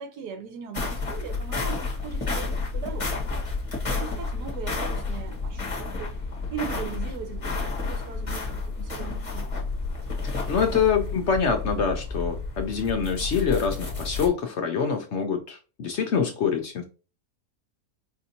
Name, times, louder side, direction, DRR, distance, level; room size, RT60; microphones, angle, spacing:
voice 1, 0.0-3.1 3.8-6.1 6.5-9.6, right 7 dB, 85° right, 1.4 m, -39 dB
sound 1, 0.7-14.3, left 3 dB, 25° left, 1.0 m, -31 dB
voice 2, 10.2-16.8, left 6 dB, 60° left, 0.7 m, -25 dB
4.8 x 2.6 x 2.7 m
omnidirectional pair, 1.6 m